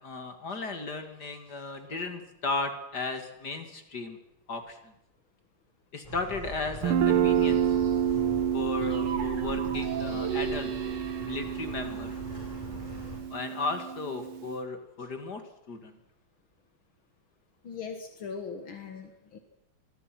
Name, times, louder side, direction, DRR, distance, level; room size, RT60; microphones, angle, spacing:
voice 1, 0.0-4.2 4.5-4.9 5.9-7.6 8.5-10.7 11.2-12.2 13.3-15.4 15.7-16.0, left 3 dB, 50° left, 6 dB, 2.8 m, -35 dB
sound 1, 6.0-13.2, equal, 15° left, 8.2 m, -42 dB
Guitar, 6.8-14.5, right 9 dB, 75° right, 1.8 m, -29 dB
sound 2, 8.8-12.8, right 6 dB, 55° right, 2.4 m, -38 dB
voice 2, 17.6-19.4, left 5 dB, 70° left, 5 dB, 2.5 m, -40 dB
26.0 x 21.0 x 6.1 m, 0.84 s
omnidirectional pair, 2.4 m